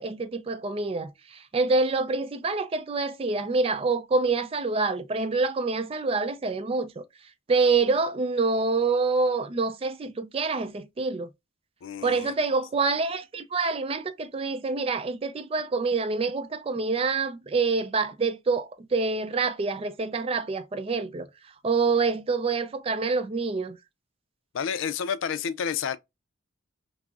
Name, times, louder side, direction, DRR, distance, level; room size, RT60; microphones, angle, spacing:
voice 1, 0.0-7.0 7.5-11.3 12.0-21.3 21.6-23.8, right 4 dB, 30° right, 0.4 m, -26 dB
voice 2, 11.8-12.3 24.5-26.0, left 7 dB, 75° left, 0.4 m, -30 dB
5.8 x 2.0 x 2.3 m
head